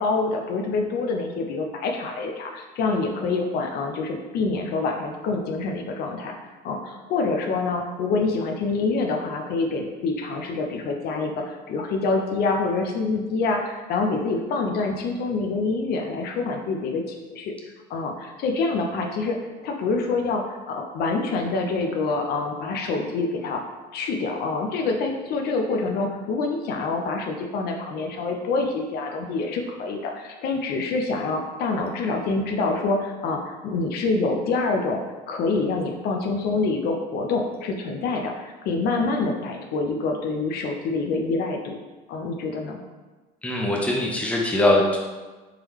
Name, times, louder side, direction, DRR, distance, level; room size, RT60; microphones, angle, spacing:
voice 1, 0.0-6.3 6.6-17.5 17.9-19.4 19.6-23.6 23.9-35.0 35.3-41.7 42.1-42.8, left 3 dB, 60° left, 3 dB, 0.5 m, -26 dB
voice 2, 43.4-45.0, left 1 dB, 5° left, -1 dB, 0.6 m, -21 dB
3.7 x 3.2 x 3.0 m, 1.2 s
cardioid pair, 125°, 18 cm